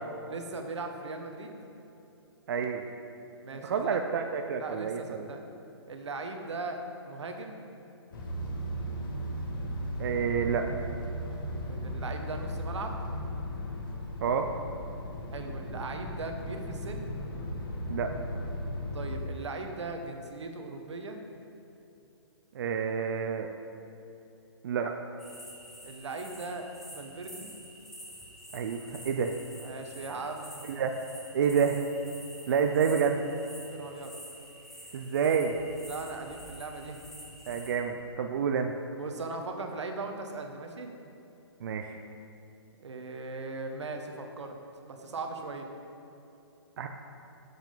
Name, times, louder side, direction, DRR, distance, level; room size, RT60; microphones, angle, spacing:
voice 1, 0.3-1.6 3.4-4.0 4.6-5.5 5.9-7.6 11.7-13.0 15.3-17.1 18.9-21.2 25.8-27.6 29.6-30.7 33.6-34.1 35.9-37.0 38.9-40.9 42.8-44.6 44.8-45.7, right 3 dB, 80° right, 4 dB, 1.3 m, -39 dB
voice 2, 2.5-2.9 3.6-5.3 10.0-10.7 14.2-14.5 17.9-18.1 22.5-23.5 24.6-25.0 28.5-29.3 30.7-30.9 31.3-31.8 32.5-33.2 34.9-35.5 37.5-38.7 41.6-42.0 46.8-46.9, right 7 dB, 50° right, 4 dB, 0.6 m, -28 dB
sound 1, 8.1-19.2, equal, 50° left, 1.8 m, -36 dB
sound 2, 25.2-37.8, equal, ahead, 1.2 m, -48 dB
11.5 x 7.3 x 3.9 m, 2.9 s
hypercardioid pair, 155°, 15 cm